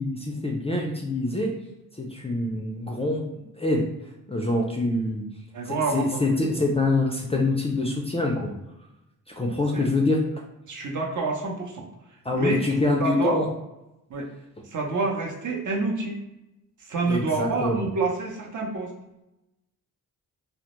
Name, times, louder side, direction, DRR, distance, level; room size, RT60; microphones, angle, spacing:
voice 1, 0.0-1.5 2.0-3.8 4.3-5.3 5.7-8.5 9.3-10.2 12.2-13.5 17.1-17.8, left 2 dB, 15° left, 0 dB, 0.4 m, -25 dB
voice 2, 5.5-6.2 9.7-9.9 10.7-11.8 12.3-12.6 13.0-13.4 14.1-14.3 14.7-16.2 16.8-18.9, right 3 dB, 55° right, -1 dB, 0.7 m, -28 dB
2.1 x 2.0 x 2.9 m, 0.92 s
cardioid pair, 60°, 36 cm